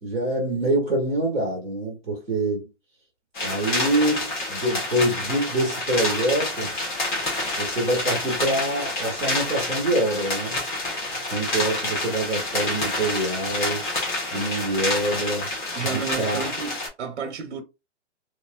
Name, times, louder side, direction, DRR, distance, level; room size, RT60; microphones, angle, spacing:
voice 1, 0.0-2.7 3.4-6.7 7.6-10.6 11.3-13.8 14.3-15.5 15.8-16.5, right 1 dB, 5° left, 0.4 m, -25 dB
sound 1, 3.3-16.9, left 2 dB, 40° left, 1.4 m, -28 dB
voice 2, 15.7-17.6, right 6 dB, 65° right, 0.8 m, -31 dB
3.0 x 2.7 x 2.3 m
hypercardioid pair, 175°, 36 cm